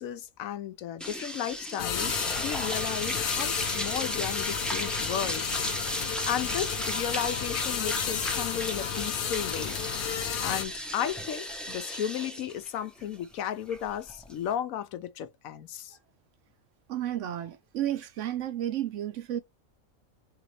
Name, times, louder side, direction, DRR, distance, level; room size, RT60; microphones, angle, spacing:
voice 1, 0.0-9.8 10.1-16.0, left 10 dB, 85° left, 1.0 m, -34 dB
sound 1, 1.0-14.5, equal, ahead, 0.5 m, -35 dB
sound 2, 1.8-10.7, left 8 dB, 60° left, 0.5 m, -33 dB
voice 2, 16.9-19.4, right 11 dB, 70° right, 0.9 m, -32 dB
3.9 x 3.3 x 3.0 m
omnidirectional pair, 1.4 m